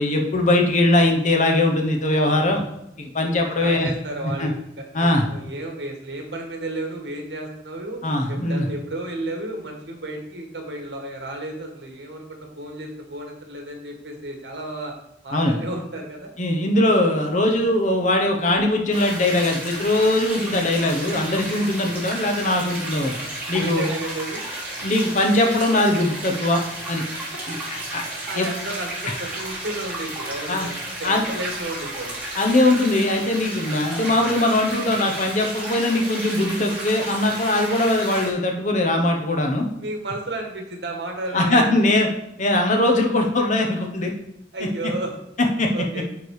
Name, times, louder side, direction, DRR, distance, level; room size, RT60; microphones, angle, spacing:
voice 1, 0.0-2.6 3.0-3.9 4.4-4.5 4.9-5.2 8.0-8.7 15.3-15.6 16.4-23.1 23.5-23.9 24.8-26.6 26.9-27.0 27.5-27.6 27.9-28.0 28.3-28.5 30.5-30.7 31.0-31.2 32.3-39.7 41.3-42.1 42.4-44.1 44.6-44.7 45.6-45.7, left 1 dB, 45° left, 2 dB, 1.2 m, -21 dB
voice 2, 3.6-8.0 8.3-14.9 15.2-16.3 23.5-24.4 27.5-27.6 27.9-30.7 31.0-32.2 39.8-41.9 44.5-45.1 45.7-46.0, right 2 dB, 75° right, 2 dB, 1.8 m, -33 dB
sound 1, 18.9-38.3, right 1 dB, 10° right, 2.7 m, -33 dB
9.4 x 3.7 x 4.9 m, 0.82 s
head